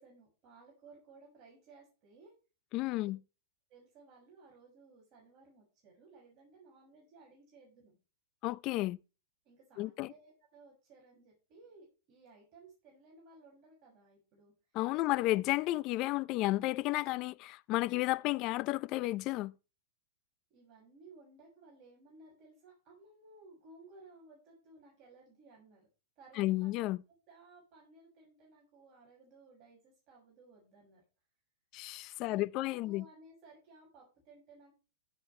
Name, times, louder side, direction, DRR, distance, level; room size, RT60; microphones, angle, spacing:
voice 1, 0.0-2.3 3.7-8.0 9.4-14.5 15.0-15.1 16.5-16.7 20.5-25.9 26.2-26.8 27.1-31.0 32.2-34.7, right 3 dB, 35° right, 6.5 m, -59 dB
voice 2, 2.7-3.2 8.4-9.0 9.8-10.1 14.7-19.5 26.4-27.0 31.7-33.0, left 18 dB, 40° left, 0.6 m, -32 dB
16.0 x 7.8 x 3.3 m
hypercardioid pair, 135°, 0 cm